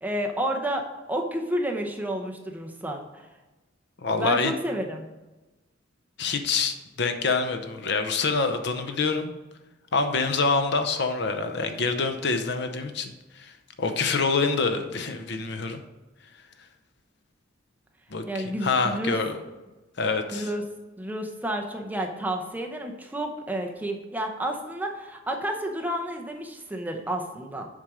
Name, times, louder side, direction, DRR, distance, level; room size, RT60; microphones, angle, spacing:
voice 1, 0.0-3.2 4.2-5.1 18.3-19.2 20.3-20.6 21.0-27.7, right 1 dB, 10° right, 2 dB, 0.7 m, -30 dB
voice 2, 4.0-4.5 6.2-9.3 9.9-13.5 13.8-15.8 18.1-19.4 20.0-20.5, left 4 dB, 60° left, 7 dB, 0.7 m, -26 dB
7.4 x 5.1 x 4.9 m, 1.1 s
head